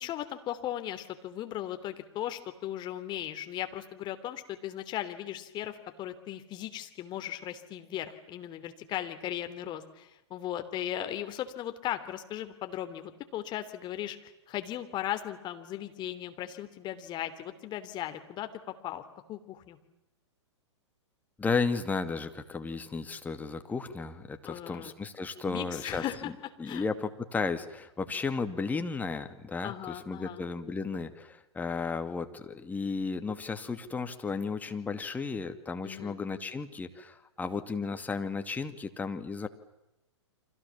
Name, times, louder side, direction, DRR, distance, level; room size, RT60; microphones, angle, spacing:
voice 1, 0.0-19.0 19.3-19.8 24.5-24.9 25.5-26.3 26.6-26.9 29.6-30.4 35.8-36.2, left 12 dB, 30° left, 8 dB, 3.2 m, -37 dB
voice 2, 21.4-26.0 26.6-39.5, left 4 dB, 10° left, 7 dB, 2.3 m, -34 dB
30.0 x 26.0 x 7.3 m, 0.92 s
figure-of-eight pair, 110°, 15 cm